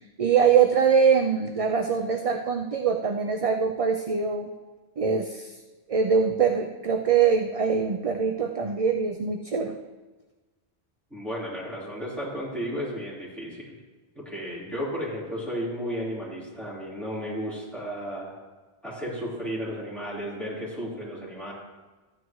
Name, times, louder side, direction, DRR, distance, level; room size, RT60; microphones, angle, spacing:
voice 1, 0.2-4.5 5.0-5.5 5.9-9.8, right 6 dB, 45° right, 4 dB, 0.5 m, -23 dB
voice 2, 11.1-13.7 14.1-18.4 18.8-21.5, equal, ahead, -8 dB, 3.9 m, -33 dB
14.0 x 9.8 x 3.1 m, 1.2 s
omnidirectional pair, 1.1 m